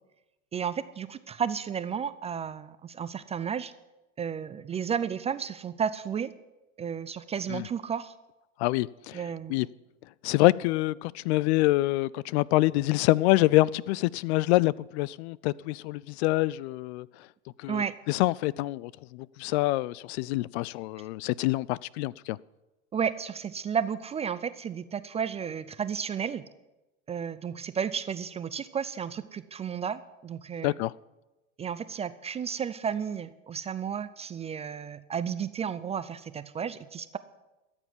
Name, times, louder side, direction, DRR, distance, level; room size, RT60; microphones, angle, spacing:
voice 1, 0.5-3.7 4.2-6.3 6.8-8.1 9.1-9.5 17.7-17.9 22.9-26.5 27.1-30.8 31.6-37.2, right 7 dB, 15° right, 0.4 m, -32 dB
voice 2, 8.6-9.2 9.5-9.7 10.2-17.1 17.6-22.4 30.6-30.9, left 18 dB, 55° left, 0.5 m, -26 dB
14.0 x 7.3 x 9.8 m
hypercardioid pair, 95°, 40 cm